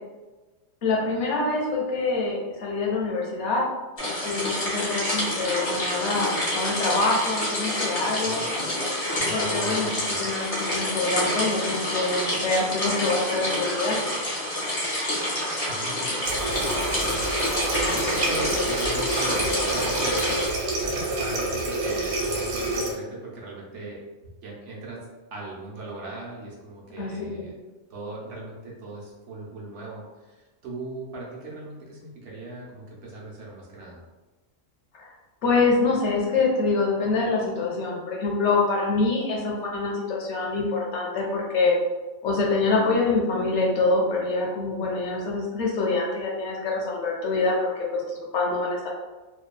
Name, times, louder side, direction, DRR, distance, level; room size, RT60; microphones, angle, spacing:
voice 1, 0.8-3.6 4.2-8.4 9.3-9.9 10.2-14.0 27.0-27.1 34.9-35.1 35.4-41.7 42.2-48.9, left 3 dB, 65° left, -2 dB, 0.8 m, -25 dB
sound 1, 4.0-20.5, left 1 dB, 40° left, 0.6 m, -28 dB
voice 2, 9.2-10.3 15.7-20.4 20.8-24.0 24.4-27.5 27.9-34.0, right 3 dB, 65° right, -4 dB, 0.9 m, -39 dB
Water tap faucet, 16.2-22.9, right 2 dB, 90° right, 1.1 m, -28 dB
2.7 x 2.2 x 2.2 m, 1.2 s
omnidirectional pair, 1.4 m